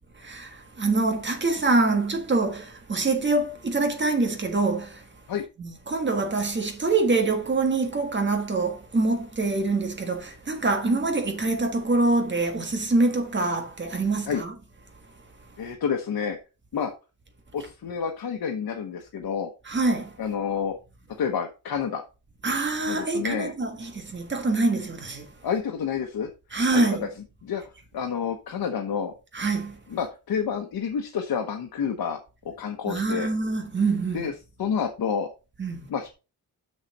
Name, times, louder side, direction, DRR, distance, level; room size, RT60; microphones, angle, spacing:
voice 1, 0.2-5.1 5.6-14.5 19.7-20.1 22.4-25.3 26.5-27.1 29.3-29.8 32.9-34.2 35.6-35.8, right 3 dB, 30° right, 1.6 m, -25 dB
voice 2, 15.6-16.4 16.7-16.9 17.5-19.5 20.2-20.8 21.2-22.0 22.9-23.5 25.4-26.3 26.7-27.0 27.4-27.6 27.9-29.1 29.9-32.2 32.4-33.3 34.1-34.3 34.6-35.3 35.9-36.1, left 7 dB, 90° left, 1.1 m, -29 dB
6.6 x 6.3 x 4.2 m
wide cardioid pair, 175°, 36 cm